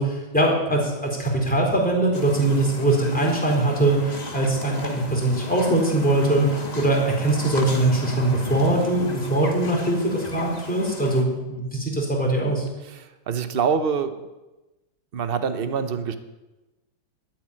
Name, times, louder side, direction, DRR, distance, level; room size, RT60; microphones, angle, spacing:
voice 1, 0.0-12.7, right 2 dB, 5° left, -3 dB, 4.1 m, -22 dB
sound 1, 2.1-11.2, left 3 dB, 25° left, 1.2 m, -36 dB
voice 2, 12.8-14.2 15.1-16.1, right 6 dB, 70° right, 9 dB, 0.5 m, -26 dB
12.0 x 9.1 x 9.8 m, 1.1 s
omnidirectional pair, 2.3 m